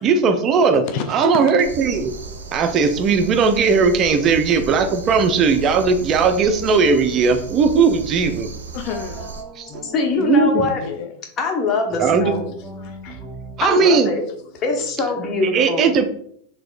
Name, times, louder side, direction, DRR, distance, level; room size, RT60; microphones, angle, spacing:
voice 1, 0.0-0.8 1.1-2.1 2.5-8.5 9.6-9.7 10.2-10.7 12.0-12.4 13.6-14.1 15.4-16.0, right 5 dB, 35° right, 8 dB, 0.4 m, -17 dB
voice 2, 0.6-1.5 7.4-7.5 8.7-9.3 10.7-11.1 12.6-13.3 14.5-14.6, left 7 dB, 55° left, 6 dB, 0.4 m, -30 dB
sound 1, 1.6-9.4, right 5 dB, 90° right, 0.5 m, -35 dB
sound 2, 8.8-11.1 11.9-15.2, equal, 5° right, 1.1 m, -39 dB
voice 3, 9.8-10.8 11.4-12.4 13.6-14.2 14.6-16.0, left 3 dB, 35° left, 2 dB, 0.9 m, -22 dB
4.1 x 2.8 x 2.5 m, 0.64 s
hypercardioid pair, 105°, 0 cm